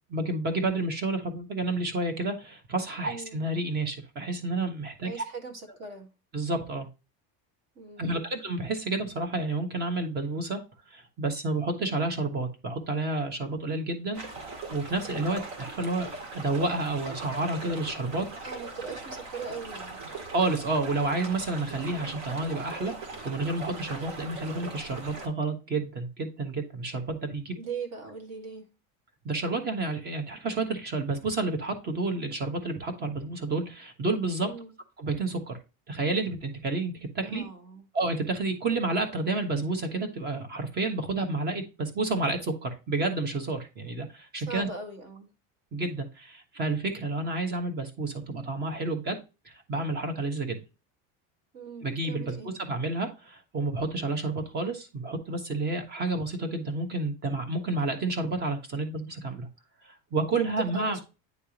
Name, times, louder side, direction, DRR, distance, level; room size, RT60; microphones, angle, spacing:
voice 1, 0.1-5.2 6.3-6.9 8.0-10.6 10.9-14.2 14.7-18.2 20.3-23.0 23.2-27.6 29.2-34.5 35.0-35.6 35.9-37.4 37.9-44.7 45.7-49.2 49.4-50.6 51.8-59.5 59.8-61.0, right 2 dB, 25° right, 1.3 m, -30 dB
voice 2, 3.1-3.4 5.0-6.1 7.8-8.2 18.4-20.0 27.6-28.7 34.4-34.7 37.2-37.8 44.5-45.3 51.5-52.5 60.3-61.0, right 4 dB, 45° right, 1.7 m, -39 dB
sound 1, 14.1-25.3, right 3 dB, 60° right, 1.9 m, -40 dB
9.4 x 3.5 x 2.9 m
cardioid pair, 165°, 38 cm